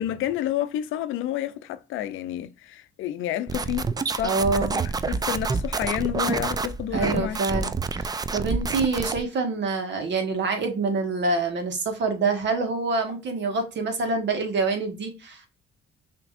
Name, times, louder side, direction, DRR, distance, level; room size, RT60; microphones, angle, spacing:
voice 1, 0.0-7.4, left 12 dB, 90° left, 0.6 m, -30 dB
sound 1, 3.5-9.2, right 4 dB, 20° right, 0.4 m, -28 dB
voice 2, 4.2-4.8 6.9-15.5, right 3 dB, 65° right, 1.5 m, -26 dB
6.0 x 3.0 x 2.5 m
cardioid pair, 90°, 20 cm